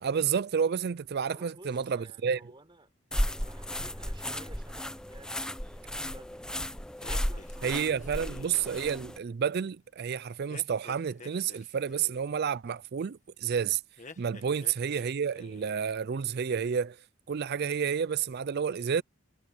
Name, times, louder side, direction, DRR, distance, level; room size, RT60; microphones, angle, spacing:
voice 1, 0.0-2.4 7.6-13.8 14.2-17.0 17.3-19.0, right 7 dB, 50° right, 0.4 m, -30 dB
voice 2, 1.3-6.5 7.1-8.5 14.4-14.8, right 2 dB, 25° right, 5.5 m, -55 dB
sound 1, 3.1-9.2, equal, 5° left, 0.7 m, -34 dB
sound 2, 7.0-8.9 10.5-12.3 14.0-15.1 15.3-15.9, left 3 dB, 35° left, 1.9 m, -49 dB
head